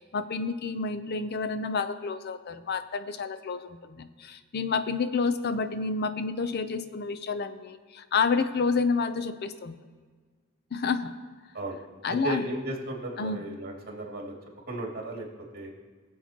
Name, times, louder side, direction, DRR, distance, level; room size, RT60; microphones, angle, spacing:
voice 1, 0.0-9.8 10.7-11.1 12.0-12.4 13.2-13.4, left 4 dB, 50° left, 11 dB, 0.6 m, -29 dB
voice 2, 12.1-14.4 14.7-15.3 15.5-15.7, right 1 dB, 50° right, -2 dB, 2.4 m, -35 dB
21.5 x 7.5 x 2.9 m, 1.5 s
head